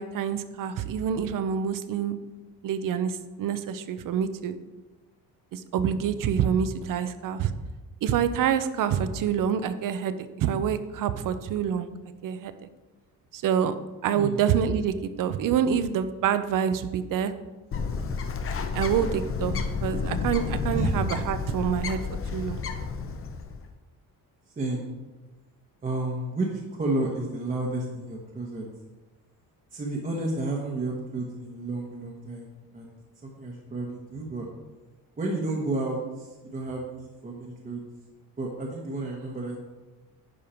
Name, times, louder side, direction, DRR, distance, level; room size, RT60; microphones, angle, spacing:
voice 1, 0.0-2.2 2.6-4.6 5.5-7.5 8.0-11.9 12.2-12.5 13.3-13.7 14.0-17.3 18.7-22.0 22.3-22.6, right 8 dB, 60° right, 12 dB, 0.7 m, -27 dB
Bird, 17.7-23.6, left 5 dB, 35° left, 0.7 m, -31 dB
voice 2, 24.6-24.9 25.8-28.6 29.7-33.0 33.2-34.5 35.2-37.8 38.4-39.6, right 2 dB, 25° right, -2 dB, 1.1 m, -31 dB
10.0 x 5.5 x 4.4 m, 1.2 s
cardioid pair, 150°, 36 cm